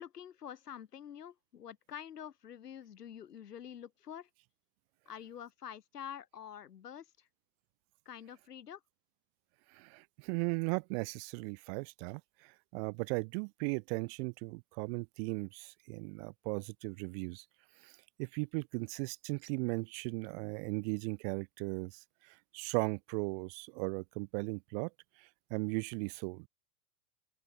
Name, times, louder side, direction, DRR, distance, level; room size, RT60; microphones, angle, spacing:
voice 1, 0.0-4.3 5.1-7.3 8.1-8.8, left 9 dB, 80° left, 2.3 m, -47 dB
voice 2, 9.7-17.4 17.8-17.9 18.2-24.9 25.2-26.5, right 36 dB, 40° right, 0.6 m, -37 dB
open air
hypercardioid pair, 95°, 47 cm